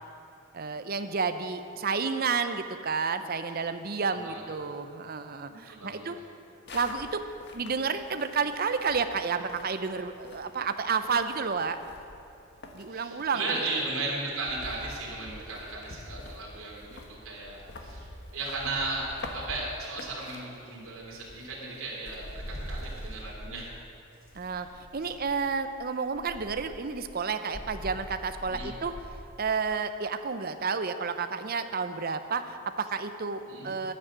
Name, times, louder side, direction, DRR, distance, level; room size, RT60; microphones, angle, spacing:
voice 1, 0.5-6.2 6.7-7.2 7.5-11.8 12.7-13.7 24.3-24.7 24.9-28.9 29.4-33.9, right 5 dB, 45° right, 9 dB, 0.6 m, -31 dB
voice 2, 5.7-6.0 12.9-18.1 18.3-19.1 19.3-23.7 24.5-24.6 25.0-25.1 28.4-28.7 33.4-33.7, right 3 dB, 75° right, -4 dB, 3.4 m, -36 dB
sound 1, 6.7-23.2, left 1 dB, 50° left, 1.3 m, -47 dB
sound 2, 22.0-23.3 24.2-25.5 26.1-26.8 27.5-29.2, equal, 70° left, 2.6 m, -42 dB
11.0 x 9.7 x 7.5 m, 2.6 s
head